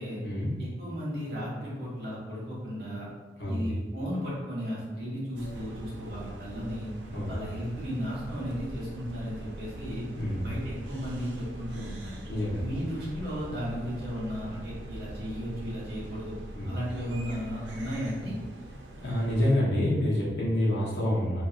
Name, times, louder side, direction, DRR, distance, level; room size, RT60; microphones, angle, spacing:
voice 1, 0.6-3.1 3.5-6.9 7.2-10.0 10.4-12.2 12.6-16.3 16.6-18.3, equal, 60° right, -8 dB, 1.3 m, -35 dB
sound 1, 5.3-19.6, right 1 dB, 90° right, 0.5 m, -43 dB
voice 2, 12.3-12.6 16.5-16.7 19.0-21.4, left 1 dB, 75° left, -6 dB, 0.9 m, -27 dB
2.9 x 2.5 x 2.4 m, 1.3 s
head